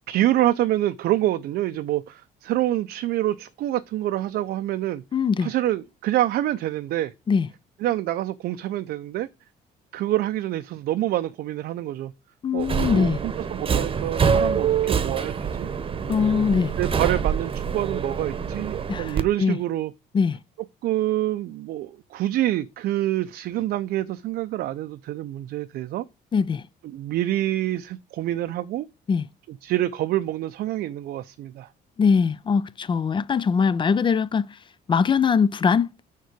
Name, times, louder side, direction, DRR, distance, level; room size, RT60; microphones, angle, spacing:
voice 1, 0.1-5.0 5.4-7.1 7.8-9.3 9.9-12.1 12.5-16.0 16.8-19.9 20.8-26.0 26.8-28.9 29.5-31.7, right 14 dB, 70° right, 0.6 m, -26 dB
voice 2, 5.1-5.5 7.3-7.5 12.4-13.2 16.1-16.7 18.9-19.6 20.1-20.4 26.3-26.6 29.1-29.2 32.0-34.5 34.9-35.9, left 6 dB, 30° left, 0.5 m, -21 dB
Subway metro underground, 12.6-19.2, right 6 dB, 30° right, 1.0 m, -25 dB
6.6 x 4.6 x 6.7 m
cardioid pair, 110°, 17 cm